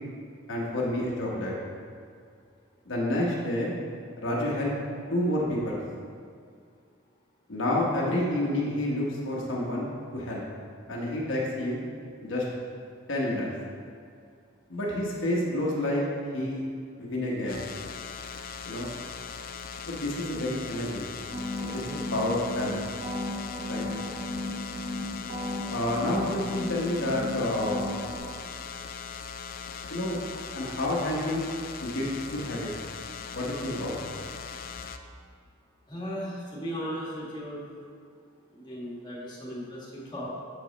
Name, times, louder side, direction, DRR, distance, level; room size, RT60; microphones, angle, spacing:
voice 1, 0.5-1.5 2.9-3.7 4.2-4.7 5.1-5.8 7.5-10.4 10.9-11.8 12.2-12.4 13.1-13.5 14.7-16.0 16.3-16.6 17.0-17.7 18.6-18.9 19.9-21.1 21.6-22.7 23.7-23.8 25.7-27.8 29.9-30.2 30.5-31.5 31.8-32.7 33.3-34.0, left 1 dB, 65° left, -4 dB, 1.1 m, -29 dB
sound 1, 17.5-35.0, left 6 dB, 45° left, 0.3 m, -40 dB
sound 2, 21.3-22.7 23.0-25.0 25.3-27.3 27.6-28.2, left 1 dB, 50° right, 1.7 m, -34 dB
voice 2, 35.9-37.6 38.5-40.4, equal, 20° left, -6 dB, 1.4 m, -36 dB
6.7 x 5.0 x 4.0 m, 2.3 s
head